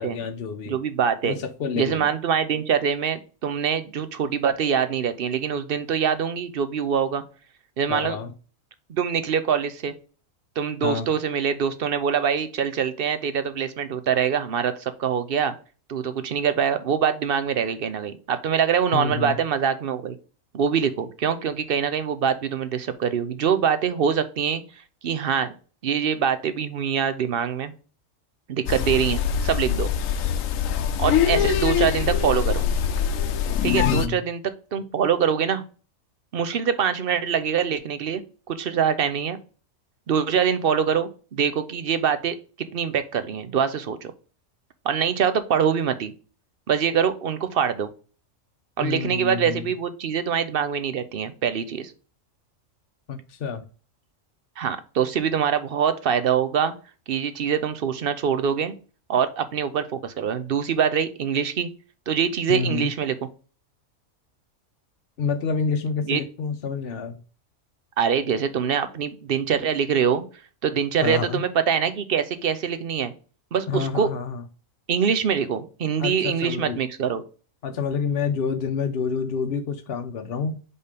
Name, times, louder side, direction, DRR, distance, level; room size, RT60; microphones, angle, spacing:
voice 1, 0.0-0.8 1.2-2.1 7.9-8.3 10.8-11.1 18.9-19.4 31.4-31.5 33.8-34.2 48.8-49.6 53.1-53.6 62.5-62.9 65.2-67.2 71.0-71.4 73.7-74.4 76.0-76.8 77.6-80.6, left 5 dB, 55° left, 0.9 m, -28 dB
voice 2, 0.7-1.4 1.8-7.2 7.8-8.2 8.9-9.9 10.6-15.5 15.9-20.2 20.5-24.6 25.0-25.5 25.8-27.7 28.5-29.9 31.0-32.7 33.6-34.4 34.7-35.6 36.3-39.4 40.1-42.4 42.7-44.1 44.8-46.1 46.7-47.9 48.8-51.9 54.6-56.7 57.1-58.7 59.1-61.7 62.1-63.1 66.1-66.2 68.0-70.2 70.6-73.1 73.5-74.1 74.9-77.2, right 7 dB, 55° right, 0.8 m, -24 dB
sound 1, 28.7-34.1, left 8 dB, 85° left, 1.0 m, -23 dB
5.1 x 4.4 x 5.1 m
omnidirectional pair, 1.3 m